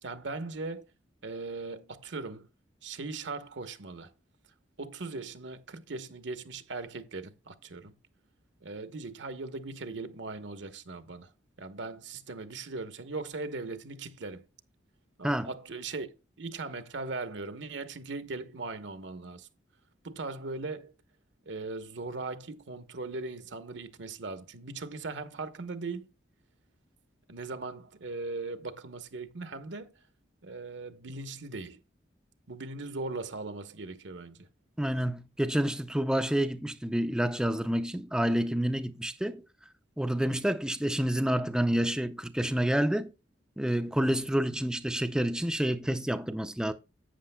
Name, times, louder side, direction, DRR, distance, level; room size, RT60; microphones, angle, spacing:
voice 1, 0.0-0.8 1.2-2.5 2.8-4.1 4.8-7.9 8.6-11.3 11.6-14.4 15.2-16.1 16.4-19.5 20.0-20.9 21.5-26.1 27.3-29.9 30.4-31.8 32.5-34.5 43.9-44.0, right 3 dB, 75° right, 1.0 m, -39 dB
voice 2, 34.8-39.4 40.0-43.1 43.6-46.7, right 1 dB, 5° right, 0.4 m, -28 dB
11.5 x 8.5 x 2.2 m
head